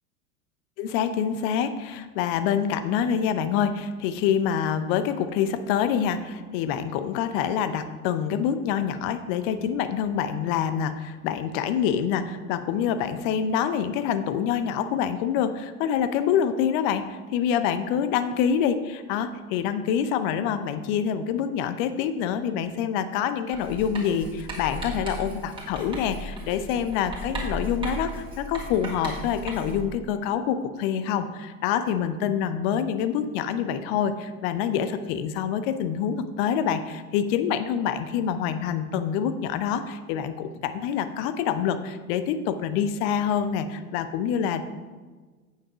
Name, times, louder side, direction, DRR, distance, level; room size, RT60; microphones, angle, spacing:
voice 1, 0.8-44.6, left 8 dB, 35° left, 11 dB, 0.7 m, -26 dB
Writing, 23.5-29.9, right 1 dB, 10° right, 2.7 m, -36 dB
8.7 x 7.4 x 5.1 m, 1.4 s
figure-of-eight pair, 90°, 44 cm